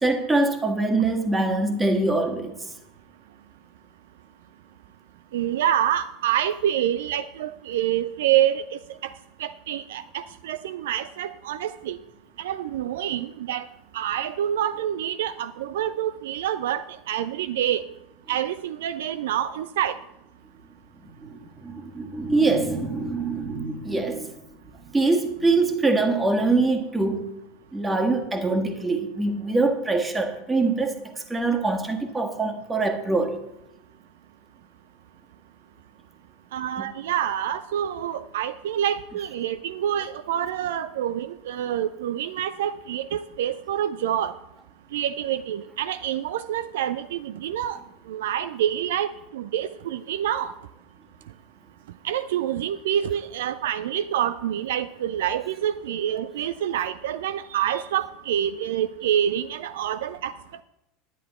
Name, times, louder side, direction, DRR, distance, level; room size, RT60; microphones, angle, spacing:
voice 1, 0.0-2.5 21.2-24.3 24.9-27.2 27.7-33.3 36.8-36.9, right 3 dB, 15° right, 5 dB, 1.6 m, -24 dB
voice 2, 5.3-9.1 9.4-12.0 12.4-13.7 13.9-17.8 18.3-20.0 36.5-44.3 44.9-47.8 48.1-50.5 52.0-60.4, right 10 dB, 65° right, 13 dB, 0.3 m, -27 dB
10.5 x 10.0 x 4.2 m, 0.87 s
figure-of-eight pair, 80°, 0 cm